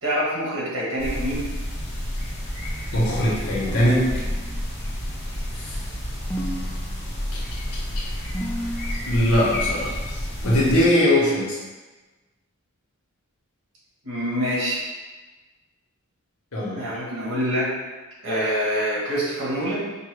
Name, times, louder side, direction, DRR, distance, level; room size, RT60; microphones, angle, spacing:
voice 1, 0.0-1.4 14.0-14.8 16.7-17.7 18.2-19.9, equal, 65° right, -6 dB, 1.3 m, -25 dB
sound 1, 1.0-10.9, left 1 dB, 45° left, 1.5 m, -30 dB
voice 2, 2.9-4.3 5.5-5.8 9.0-9.9 10.4-11.6 16.5-16.8, left 1 dB, 85° left, -5 dB, 1.3 m, -21 dB
sound 2, 3.6-4.8 6.3-7.4 8.3-9.2 10.4-11.4, right 1 dB, 10° left, 0.4 m, -34 dB
5.4 x 2.3 x 3.3 m, 1.2 s
head